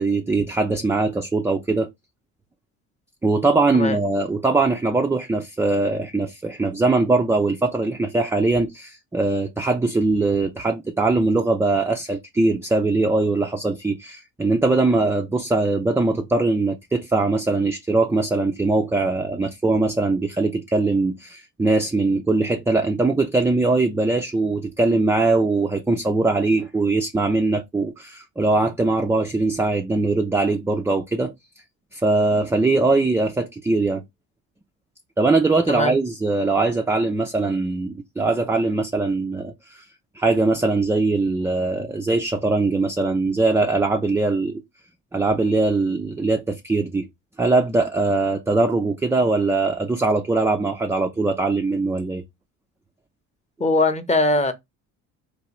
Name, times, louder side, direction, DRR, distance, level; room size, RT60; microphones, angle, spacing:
voice 1, 0.0-1.9 3.2-31.3 31.9-34.0 35.2-39.8 40.1-44.6 45.1-47.1 47.4-52.2, right 3 dB, 5° right, 0.3 m, -21 dB
voice 2, 53.6-54.5, left 2 dB, 20° left, 0.7 m, -20 dB
3.1 x 2.2 x 2.9 m
supercardioid pair, 65°, 37 cm